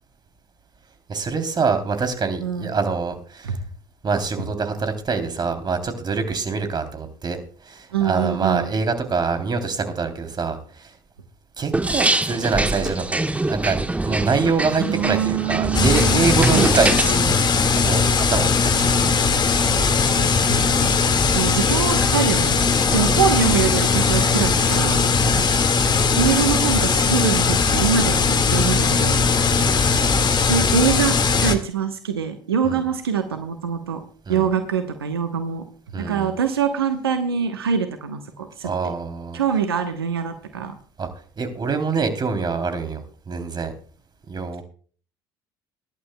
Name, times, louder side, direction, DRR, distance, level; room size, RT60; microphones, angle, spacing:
voice 1, 1.1-3.6 4.0-11.0 11.6-17.4 17.7-19.2 22.9-23.2 25.2-25.5 29.5-29.8 32.6-32.8 34.3-34.5 35.9-36.4 38.6-39.4 41.0-41.1 41.4-43.7 44.3-44.6, right 4 dB, 35° right, 7 dB, 3.3 m, -25 dB
voice 2, 2.4-2.8 3.4-3.5 7.9-8.7 14.8-16.7 20.1-21.0 21.3-22.6 22.9-25.1 26.2-29.3 29.6-30.0 30.5-31.2 31.4-34.0 34.3-35.6 36.0-38.7 39.3-40.7, right 7 dB, 90° right, 7 dB, 1.1 m, -24 dB
sound 1, 11.7-17.2, right 2 dB, 10° right, 1.3 m, -24 dB
sound 2, 15.7-31.5, left 5 dB, 35° left, 2.0 m, -19 dB
22.0 x 11.5 x 2.3 m, 0.41 s
hypercardioid pair, 60°, 12 cm